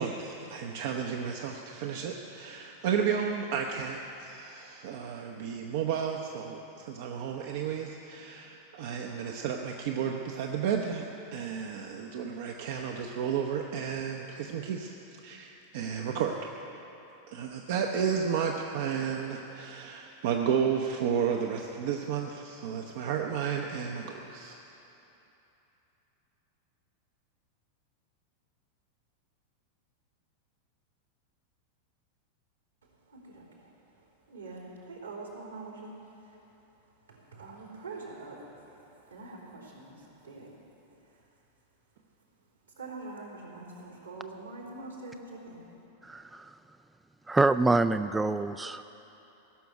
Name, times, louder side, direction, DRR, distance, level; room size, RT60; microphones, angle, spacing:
voice 1, 0.0-11.1 11.3-16.4 17.3-24.6 43.6-43.8, right 7 dB, 55° right, 2 dB, 0.8 m, -32 dB
voice 2, 33.1-33.4 34.3-35.9 36.3-36.4 37.1-38.8 39.1-40.5 42.8-45.7, right 3 dB, 80° right, -4 dB, 3.4 m, -44 dB
voice 3, 46.0-46.5 47.3-48.8, right 3 dB, 10° right, 10 dB, 0.3 m, -26 dB
17.0 x 6.9 x 9.4 m, 3.0 s
figure-of-eight pair, 90°, 0 cm